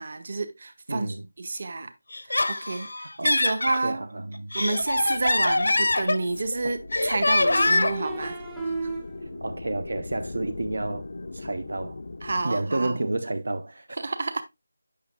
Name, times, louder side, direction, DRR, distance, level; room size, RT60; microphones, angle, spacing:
voice 1, 0.0-1.9 2.3-2.9 3.2-4.0 4.5-8.7 12.2-13.0 14.0-14.4, right 3 dB, 40° right, 1.0 m, -29 dB
voice 2, 0.9-1.3 3.2-3.3 3.8-4.5 6.6-6.7 9.4-11.0 11.3-12.0 12.4-13.9, right 2 dB, 70° right, 0.8 m, -30 dB
Laughter, 2.1-3.8 4.3-6.5 6.9-8.1, left 2 dB, 80° left, 0.8 m, -24 dB
sound 1, 4.8-12.4, left 2 dB, 55° left, 0.5 m, -40 dB
sound 2, 6.2-6.3 7.5-9.4, right 3 dB, 5° right, 0.6 m, -34 dB
8.6 x 6.2 x 2.3 m
figure-of-eight pair, 175°, 0 cm